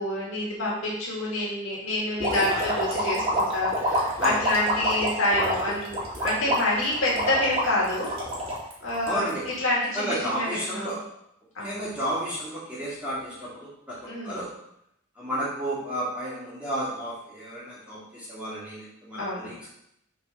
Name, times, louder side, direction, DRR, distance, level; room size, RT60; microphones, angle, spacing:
voice 1, 0.0-8.1 8.8-11.0 11.5-11.9 14.0-14.4 19.1-19.5, left 1 dB, 75° left, -5 dB, 2.2 m, -27 dB
sound 1, 2.2-9.5, equal, 25° right, 2.0 m, -27 dB
voice 2, 9.1-9.4 9.9-11.0 11.6-14.0 14.2-14.5 15.2-19.8, right 1 dB, 5° right, -10 dB, 2.2 m, -32 dB
6.8 x 4.1 x 5.4 m, 0.77 s
head